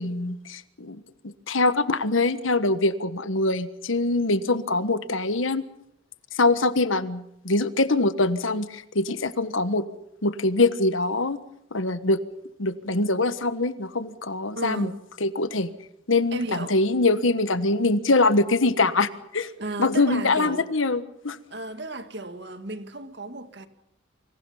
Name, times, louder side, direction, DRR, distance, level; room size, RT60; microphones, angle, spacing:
voice 1, 0.0-5.7 6.3-9.8 10.2-11.4 11.7-12.2 12.6-14.9 15.2-15.7 16.1-19.5 19.8-21.4, left 2 dB, 75° left, 1.4 m, -23 dB
voice 2, 14.6-15.0 16.3-16.7 19.6-20.7 21.5-23.7, right 2 dB, 55° right, 1.9 m, -34 dB
28.0 x 25.5 x 5.7 m
head